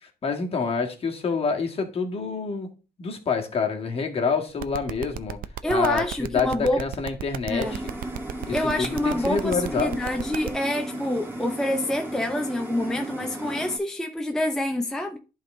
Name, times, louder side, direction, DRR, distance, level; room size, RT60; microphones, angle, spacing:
voice 1, 0.0-2.7 3.0-5.4 5.7-7.8 8.5-10.0, left 5 dB, 35° left, 1.7 m, -27 dB
sound 1, 4.6-10.5, right 12 dB, 55° right, 0.6 m, -33 dB
voice 2, 5.6-6.8 7.5-7.8 8.5-15.2, left 1 dB, 5° left, 0.6 m, -27 dB
sound 2, 7.6-13.8, right 1 dB, 15° right, 1.7 m, -35 dB
11.0 x 3.8 x 3.7 m
cardioid pair, 110°, 17 cm